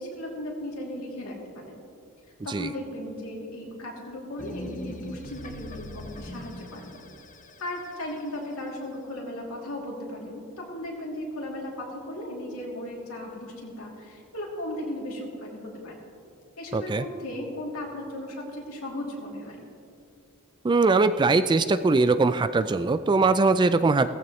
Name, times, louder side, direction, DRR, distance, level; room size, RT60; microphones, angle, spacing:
voice 1, 0.0-1.8 2.4-6.9 7.6-16.0 16.6-19.6, left 1 dB, 70° left, -2 dB, 2.9 m, -36 dB
sound 1, 4.4-8.7, left 1 dB, 35° left, 0.9 m, -41 dB
voice 2, 16.7-17.1 20.6-24.1, right 3 dB, 20° right, 12 dB, 0.3 m, -21 dB
17.0 x 15.0 x 3.2 m, 2.4 s
head